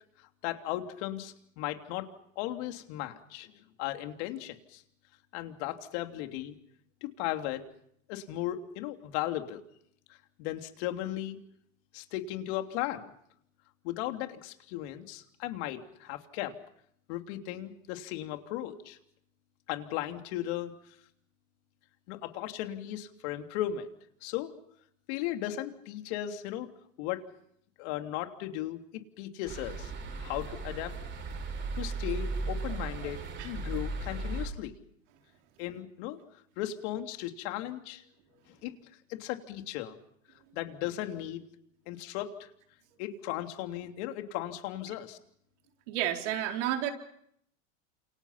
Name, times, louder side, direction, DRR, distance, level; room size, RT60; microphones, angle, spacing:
voice 1, 0.4-2.1 2.3-3.5 3.8-4.8 5.3-6.5 7.0-7.6 8.1-9.6 10.1-11.4 11.9-13.1 13.8-16.6 17.1-19.0 19.7-20.7 22.1-23.9 24.2-24.5 25.1-26.7 27.0-27.2 27.8-28.8 29.2-29.9 30.2-30.9 31.7-34.7 35.6-38.0 38.5-38.7 39.1-40.0 40.5-41.5 41.9-42.5 43.0-45.2, left 13 dB, 60° left, 5 dB, 3.2 m, -36 dB
sound 1, 29.4-34.5, right 3 dB, 30° right, 5.6 m, -36 dB
voice 2, 45.9-46.9, right 11 dB, 65° right, 3 dB, 4.4 m, -31 dB
30.0 x 28.0 x 5.8 m, 0.71 s
supercardioid pair, 125°, 38 cm